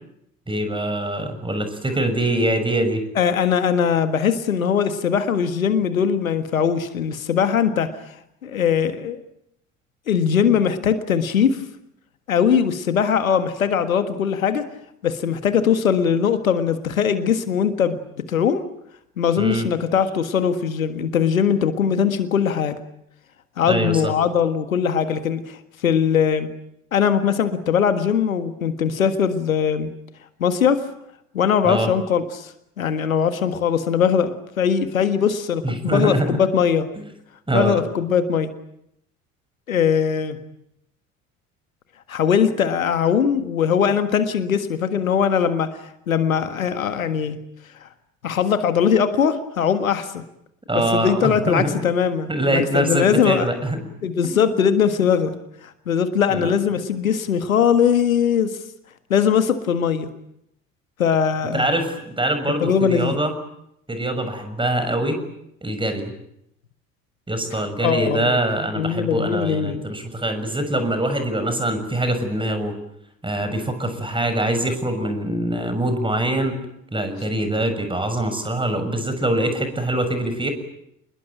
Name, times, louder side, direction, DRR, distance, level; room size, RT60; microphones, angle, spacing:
voice 1, 0.5-3.0 19.4-19.7 23.7-24.1 31.6-31.9 35.6-36.4 37.5-37.8 50.7-51.8 52.3-53.8 54.3-54.4 56.3-56.5 61.5-63.3 63.9-65.2 65.6-66.1 67.3-72.7 73.2-76.6 76.9-80.5, right 1 dB, 10° right, 9 dB, 6.5 m, -23 dB
voice 2, 3.1-7.9 8.4-9.2 10.1-11.6 12.3-14.7 15.0-18.7 19.2-22.8 23.6-26.5 26.9-29.9 30.4-30.8 31.3-36.9 37.5-38.5 39.7-40.4 42.1-45.8 46.1-47.4 47.8-47.9 48.2-50.2 50.7-53.5 54.0-55.4 55.6-58.6 59.1-60.1 61.0-61.7 62.6-63.2 67.5-68.4 68.7-69.8, left 7 dB, 80° left, 10 dB, 1.7 m, -20 dB
28.0 x 21.0 x 9.1 m, 0.78 s
figure-of-eight pair, 60°, 40 cm